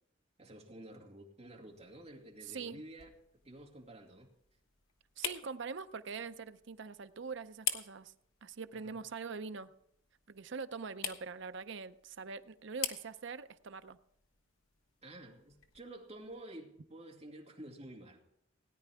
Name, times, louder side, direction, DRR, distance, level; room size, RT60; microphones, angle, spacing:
voice 1, 0.4-3.1 3.4-4.3 8.7-9.0 15.0-18.2, right 1 dB, 30° right, -1 dB, 2.3 m, -51 dB
sound 1, 1.7-16.5, left 8 dB, 80° left, 1.3 m, -47 dB
voice 2, 2.5-2.8 5.2-8.1 8.4-9.7 10.3-14.0, right 5 dB, 60° right, 11 dB, 0.6 m, -43 dB
18.5 x 10.0 x 3.5 m, 0.77 s
head